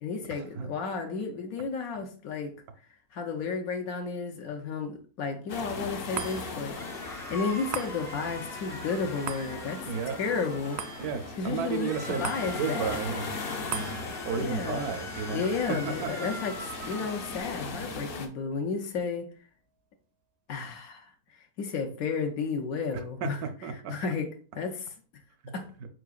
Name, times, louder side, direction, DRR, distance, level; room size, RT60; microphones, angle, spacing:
voice 1, 0.0-2.5 3.1-6.8 7.3-9.9 10.2-11.0 11.4-13.0 14.4-15.0 15.3-19.3 20.5-23.4 23.7-24.3 24.5-24.9 25.5-25.6, left 5 dB, 75° left, 4 dB, 1.1 m, -32 dB
sound 1, 5.5-18.3, left 4 dB, 55° left, 0.6 m, -39 dB
sound 2, 6.1-18.7 19.2-19.3, right 8 dB, 65° right, 0.7 m, -44 dB
sound 3, 6.7-11.2 11.7-17.4, left 1 dB, 5° left, 0.3 m, -43 dB
voice 2, 9.9-10.2 11.0-13.4 13.7-16.3 23.2-23.9 25.4-25.5, right 6 dB, 80° right, 9 dB, 1.2 m, -33 dB
4.9 x 4.7 x 2.3 m, 0.40 s
omnidirectional pair, 1.6 m